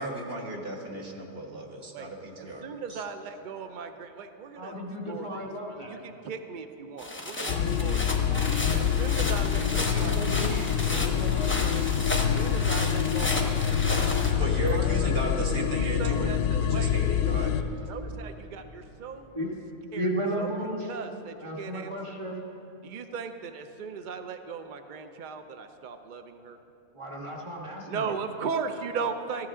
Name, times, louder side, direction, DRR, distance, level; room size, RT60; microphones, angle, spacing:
voice 1, 0.0-3.0 14.4-17.6, right 2 dB, 45° right, 0 dB, 1.4 m, -35 dB
voice 2, 2.4-4.8 5.0-5.5 5.9-8.2 8.7-11.1 11.6-15.4 15.7-16.9 17.8-19.3 19.9-20.1 20.4-22.2 22.8-26.6 27.9-29.5, right 5 dB, 85° right, 7 dB, 0.4 m, -38 dB
voice 3, 4.6-6.0 7.4-8.0 8.3-8.8 9.5-11.8 14.7-15.1 16.5-17.7 19.3-19.5 19.9-20.9 21.4-22.4 26.9-28.2, equal, 20° right, -2 dB, 1.6 m, -35 dB
sound 1, 7.0-14.3, left 2 dB, 10° left, 0.7 m, -33 dB
sound 2, 7.5-17.6, left 9 dB, 70° left, 0.9 m, -26 dB
14.0 x 13.5 x 3.7 m, 2.9 s
omnidirectional pair, 1.5 m